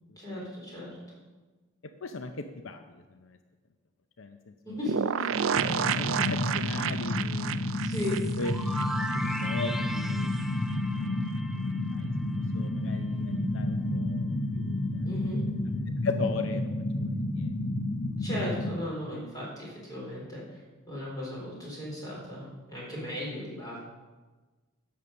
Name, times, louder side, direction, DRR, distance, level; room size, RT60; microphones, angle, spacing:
voice 1, 0.2-1.0 4.6-5.3 7.8-8.2 15.0-15.4 18.2-20.6 20.9-23.8, left 1 dB, 20° left, -5 dB, 4.2 m, -36 dB
voice 2, 1.8-2.8 3.1-3.4 4.2-4.5 5.8-7.8 8.4-8.5 9.1-10.3 11.0-11.1 11.9-12.1 12.5-15.1 16.0-16.7 17.0-17.5, left 3 dB, 70° left, 7 dB, 0.6 m, -38 dB
sound 1, 4.9-9.5 9.7-9.8 10.1-10.2, right 8 dB, 75° right, 0.4 m, -31 dB
sound 2, 5.5-18.7, left 1 dB, 55° left, 1.0 m, -31 dB
sound 3, 7.9-12.7, equal, ahead, 0.4 m, -38 dB
11.0 x 6.9 x 6.9 m, 1.3 s
head